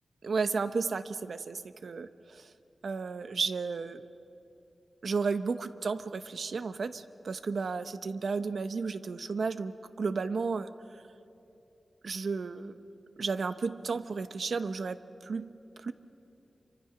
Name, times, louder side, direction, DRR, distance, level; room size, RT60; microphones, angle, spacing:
voice 1, 0.2-2.5 2.8-4.1 5.0-10.7 12.0-12.7 13.2-15.5 15.8-15.9, right 4 dB, 60° right, 11 dB, 0.8 m, -33 dB
27.5 x 24.5 x 5.9 m, 2.8 s
wide cardioid pair, 160°, 0 cm